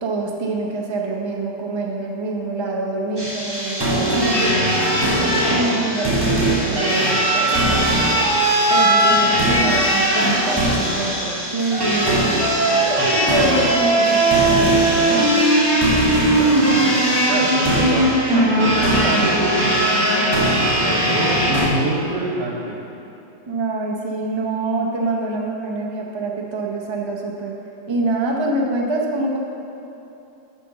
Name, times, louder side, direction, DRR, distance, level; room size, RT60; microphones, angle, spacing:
voice 1, 0.0-4.7 5.1-8.0 8.7-12.4 12.8-15.2 23.5-27.5 27.9-29.4, right 2 dB, 40° right, -1 dB, 0.4 m, -25 dB
sound 1, 3.2-21.7, right 1 dB, 15° right, 1.2 m, -18 dB
voice 2, 16.2-19.9 20.6-22.8, right 2 dB, 90° right, -1 dB, 1.6 m, -27 dB
5.8 x 5.8 x 6.7 m, 2.9 s
omnidirectional pair, 1.8 m